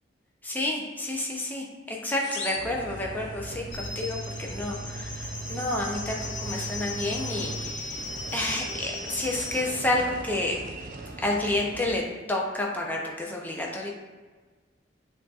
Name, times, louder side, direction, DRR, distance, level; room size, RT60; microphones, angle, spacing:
voice 1, 0.4-10.6 11.2-12.0 12.3-13.9, left 1 dB, 10° left, -1 dB, 0.5 m, -30 dB
sound 1, 2.2-3.7, left 4 dB, 65° left, 0.5 m, -40 dB
sound 2, 2.5-12.0, right 3 dB, 45° right, 0.4 m, -39 dB
sound 3, 3.7-9.6, left 3 dB, 80° left, 1.1 m, -38 dB
7.1 x 2.6 x 2.4 m, 1.4 s
head